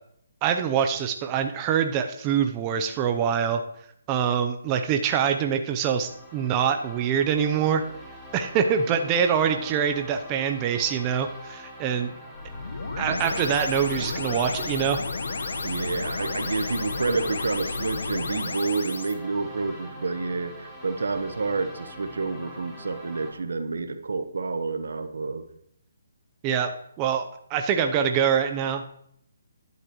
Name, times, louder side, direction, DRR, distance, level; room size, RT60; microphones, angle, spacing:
voice 1, 0.4-3.6 4.1-7.8 8.3-12.1 13.0-15.0 26.4-26.7 27.0-27.2 27.5-28.9, right 8 dB, 20° right, 6 dB, 0.7 m, -24 dB
sound 1, 5.7-23.3, left 1 dB, 5° left, 2.2 m, -43 dB
sound 2, 12.3-19.1, left 3 dB, 75° left, 1.4 m, -32 dB
voice 2, 13.0-13.4 15.6-25.4, right 4 dB, 80° right, 9 dB, 1.1 m, -29 dB
13.0 x 11.0 x 3.1 m, 0.70 s
hypercardioid pair, 155°, 0 cm